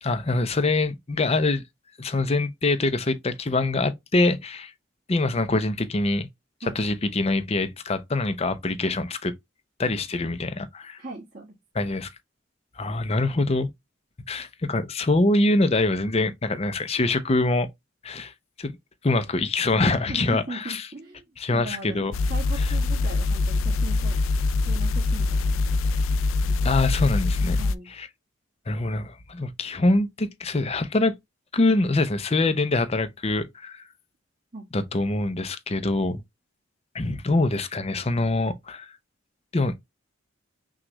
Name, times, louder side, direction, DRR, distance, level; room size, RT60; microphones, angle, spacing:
voice 1, 0.0-1.6 2.0-4.7 5.1-6.3 6.7-9.3 9.8-11.0 11.8-12.1 12.8-13.7 14.3-17.7 18.0-18.3 18.6-18.8 19.0-20.9 21.4-22.1 22.6-22.7 26.6-27.6 27.9-28.1 28.7-31.1 31.5-33.8 34.7-36.2 36.9-38.9 39.5-39.8, left 2 dB, 30° left, 0.6 m, -24 dB
voice 2, 11.0-11.5 20.1-24.2 24.6-25.7 26.4-26.6 27.6-27.9 34.5-34.7, right 2 dB, 45° right, 1.6 m, -39 dB
sound 1, 22.1-27.7, left 3 dB, 80° left, 0.4 m, -24 dB
6.1 x 2.4 x 3.0 m
head